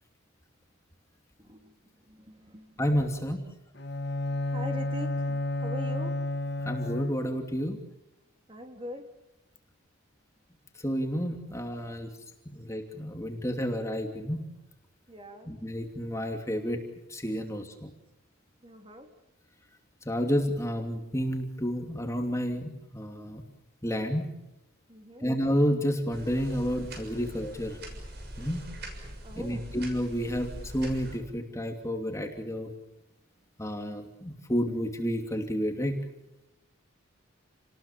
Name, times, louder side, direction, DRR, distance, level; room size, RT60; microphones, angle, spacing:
voice 1, 1.4-1.8 2.1-2.8 4.3-6.1 8.5-9.1 15.1-15.5 18.6-19.1 24.9-25.3 27.2-27.3 29.2-29.7, equal, 25° right, 5 dB, 3.2 m, -43 dB
voice 2, 2.8-3.4 6.6-7.8 10.8-12.1 12.5-14.4 15.5-16.8 17.1-17.9 20.1-23.4 23.8-24.3 25.2-27.8 28.4-28.6 29.4-32.7 33.6-36.0, equal, 15° left, 4 dB, 2.8 m, -30 dB
Bowed string instrument, 3.8-7.5, left 2 dB, 55° left, 1.9 m, -31 dB
sound 1, 26.1-31.2, right 1 dB, 50° right, 6.6 m, -42 dB
30.0 x 20.0 x 7.2 m, 0.91 s
head